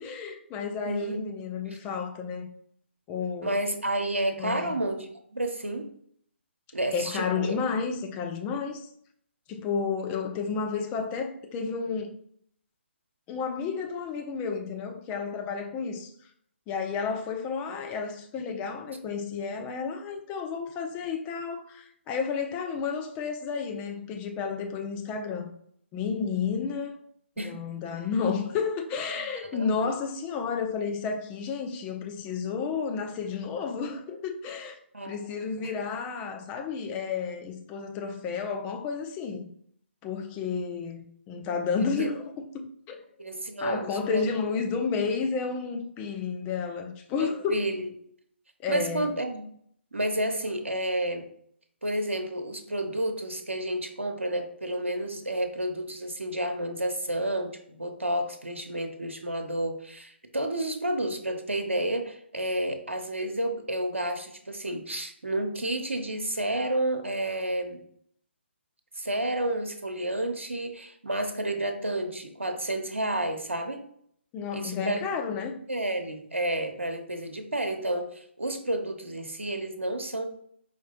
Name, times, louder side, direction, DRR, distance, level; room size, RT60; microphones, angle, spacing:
voice 1, 0.0-2.5 3.1-3.5 4.4-4.7 6.9-8.9 9.5-12.2 13.3-16.1 16.7-25.5 25.9-27.0 27.4-34.8 35.0-39.5 40.0-43.0 43.6-47.7 48.6-49.1 74.3-75.6, left 5 dB, 20° left, 0.5 m, -31 dB
voice 2, 0.9-1.2 3.4-5.9 6.7-7.5 27.4-27.5 29.4-29.7 34.9-35.2 42.0-42.1 43.2-44.3 47.2-47.9 48.7-49.5 49.9-51.2 51.8-67.8 69.0-73.8 74.5-75.0 75.7-80.3, right 1 dB, 90° right, 0.7 m, -30 dB
5.0 x 3.1 x 2.8 m
figure-of-eight pair, 140°, 7 cm